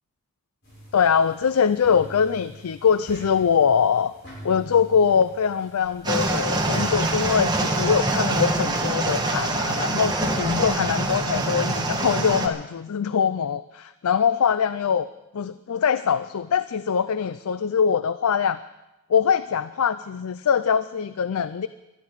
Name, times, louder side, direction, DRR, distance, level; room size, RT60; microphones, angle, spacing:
sound 1, 0.6-7.4, equal, 50° left, 7.0 m, -44 dB
voice 1, 0.9-4.1 4.4-15.1 15.3-18.6 19.1-21.7, left 7 dB, 70° left, 14 dB, 0.4 m, -23 dB
sound 2, 6.0-12.5, right 2 dB, 20° right, 1.4 m, -24 dB
20.0 x 13.0 x 4.8 m, 0.99 s
head